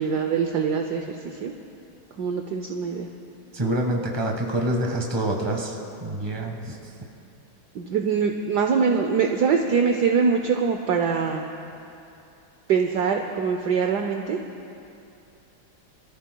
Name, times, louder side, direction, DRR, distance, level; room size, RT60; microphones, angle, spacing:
voice 1, 0.0-1.5 2.2-3.1 7.7-11.5 12.7-14.4, right 6 dB, 65° right, 3 dB, 1.1 m, -23 dB
voice 2, 3.5-5.7 6.0-6.8, right 1 dB, 15° right, 0 dB, 1.3 m, -26 dB
26.0 x 14.0 x 2.3 m, 2.7 s
omnidirectional pair, 2.3 m